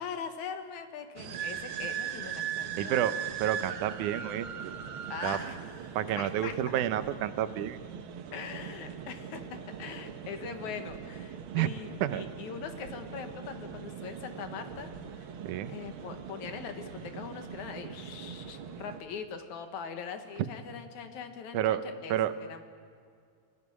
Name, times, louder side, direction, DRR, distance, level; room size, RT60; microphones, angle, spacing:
voice 1, 0.0-3.0 5.1-5.6 6.2-6.6 8.3-15.3 15.7-22.2 22.5-22.6, left 6 dB, 75° left, 7 dB, 2.8 m, -41 dB
sound 1, 1.2-19.0, right 8 dB, 60° right, 1.5 m, -40 dB
voice 2, 2.8-4.7 5.2-5.4 6.0-7.8 11.5-11.7 12.0-12.2 15.4-15.7 21.5-21.8 22.1-22.3, right 11 dB, 85° right, 12 dB, 2.3 m, -30 dB
26.0 x 14.5 x 9.7 m, 2.3 s
omnidirectional pair, 3.4 m